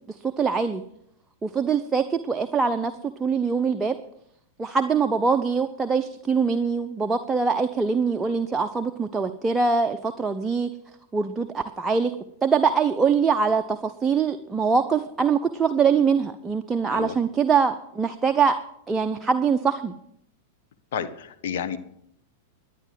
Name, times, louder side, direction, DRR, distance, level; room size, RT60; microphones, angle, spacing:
voice 1, 0.1-0.8 1.4-2.9 3.2-3.9 4.6-10.7 11.1-12.1 12.4-18.6 18.9-19.9, right 5 dB, 15° right, 6 dB, 0.7 m, -23 dB
voice 2, 20.9-21.8, left 7 dB, 60° left, 9 dB, 1.3 m, -30 dB
11.0 x 9.8 x 7.7 m, 0.74 s
figure-of-eight pair, 95°, 0 cm